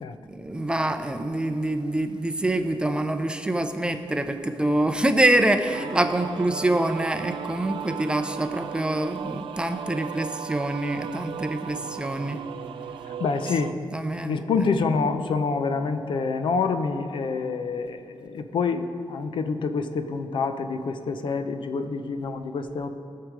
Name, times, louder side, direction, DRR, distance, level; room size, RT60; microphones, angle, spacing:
voice 1, 0.3-12.4 13.9-14.7, right 1 dB, 10° right, 7 dB, 0.5 m, -25 dB
sound 1, 5.7-13.7, right 9 dB, 80° right, 0.4 m, -36 dB
voice 2, 13.2-13.8 14.2-23.0, left 4 dB, 65° left, 8 dB, 0.7 m, -27 dB
20.0 x 6.7 x 4.7 m, 2.5 s
wide cardioid pair, 155°, 9 cm